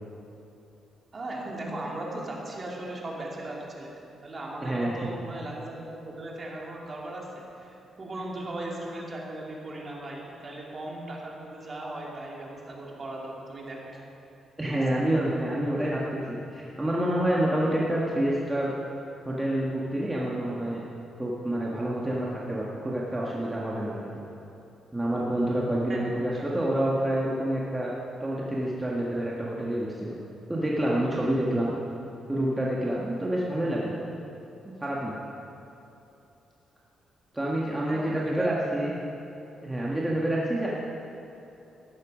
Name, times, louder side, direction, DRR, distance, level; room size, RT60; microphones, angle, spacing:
voice 1, 1.1-14.0 14.6-15.0 25.9-26.0 26.4-26.5 37.9-38.6, right 2 dB, 40° right, -3 dB, 3.0 m, -37 dB
voice 2, 4.6-5.1 14.6-18.7 19.3-20.8 21.2-24.1 24.9-27.9 28.2-30.2 30.5-31.7 32.3-34.0 34.8-35.2 37.3-38.9 39.6-40.7, right 1 dB, 15° right, -5 dB, 1.7 m, -28 dB
14.0 x 10.5 x 5.2 m, 2.9 s
cardioid pair, 75°, 0 cm